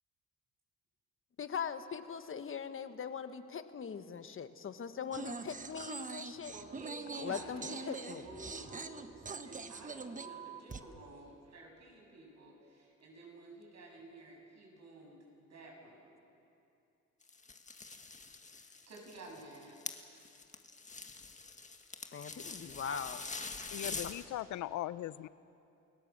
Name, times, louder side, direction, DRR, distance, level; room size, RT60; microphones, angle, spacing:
voice 1, 1.4-6.5 7.1-8.3 22.1-23.2 23.8-24.0, left 7 dB, 45° left, 10 dB, 1.4 m, -41 dB
sound 1, 5.1-10.8, right 4 dB, 25° right, 1.2 m, -44 dB
voice 2, 6.5-16.2 18.9-19.8, right 2 dB, 60° right, 0 dB, 7.2 m, -52 dB
sound 2, 17.2-24.2, left 4 dB, 25° left, 1.8 m, -45 dB
voice 3, 23.7-25.3, left 14 dB, 70° left, 17 dB, 0.7 m, -39 dB
29.5 x 17.0 x 7.5 m, 2.7 s
cardioid pair, 90°, 30 cm